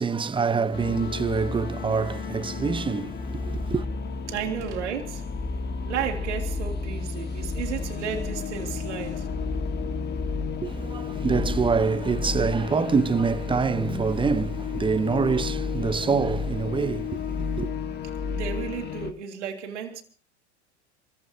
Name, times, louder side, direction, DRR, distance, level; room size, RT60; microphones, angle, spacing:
voice 1, 0.0-3.8 10.6-17.7, right 5 dB, 15° right, 1.0 m, -26 dB
sound 1, 0.7-19.1, left 5 dB, 30° left, 1.9 m, -31 dB
voice 2, 4.3-5.3 5.9-9.3 18.3-20.0, right 8 dB, 80° right, 2.5 m, -33 dB
27.5 x 15.0 x 2.9 m
hypercardioid pair, 90°, 34 cm